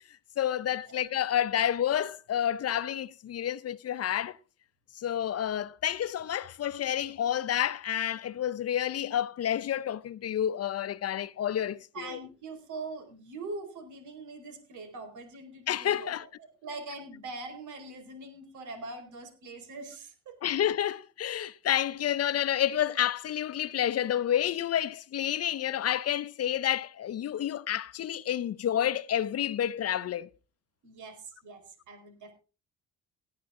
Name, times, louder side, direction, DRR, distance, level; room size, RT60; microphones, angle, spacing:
voice 1, 0.4-4.3 5.0-12.2 15.7-16.2 20.4-30.3, left 10 dB, 55° left, 0.7 m, -29 dB
voice 2, 11.9-20.4 30.8-32.3, right 3 dB, 75° right, 4.7 m, -43 dB
18.5 x 9.8 x 3.7 m
cardioid pair, 90°, 30 cm